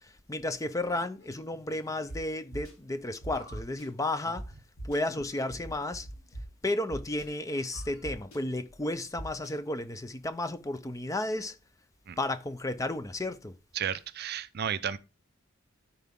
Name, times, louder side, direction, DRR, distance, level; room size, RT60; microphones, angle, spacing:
voice 1, 0.0-4.5 4.8-6.1 6.6-11.6 12.2-13.5, left 1 dB, 15° left, 0.5 m, -33 dB
sound 1, 0.9-2.4 3.3-3.7 4.2-4.4 5.0-6.3 6.8-6.9 7.5-8.5, left 2 dB, 50° left, 3.1 m, -54 dB
sound 2, 2.1-2.2 2.5-2.7 3.2-3.8 4.3-4.4 4.8-5.0 5.5-6.4 6.9-7.2 7.7-8.4 9.2-9.5, right 1 dB, 80° left, 3.1 m, -40 dB
voice 2, 13.8-15.0, right 8 dB, 50° right, 0.5 m, -33 dB
13.0 x 4.6 x 3.6 m
head